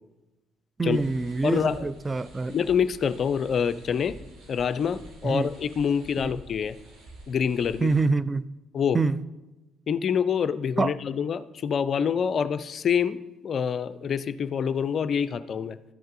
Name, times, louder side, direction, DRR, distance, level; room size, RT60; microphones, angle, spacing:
voice 1, 0.8-2.5 5.2-5.5 6.2-6.3 7.8-8.4 8.9-9.2 10.8-10.9, right 3 dB, 25° right, 0.4 m, -25 dB
sound 1, 0.9-8.0, equal, 65° right, 1.6 m, -48 dB
voice 2, 1.4-1.9 2.5-4.2 4.5-6.7 7.3-7.9 8.7-9.0 9.9-15.8, left 7 dB, 50° left, 0.4 m, -26 dB
12.5 x 7.7 x 2.6 m
figure-of-eight pair, 45°, 0 cm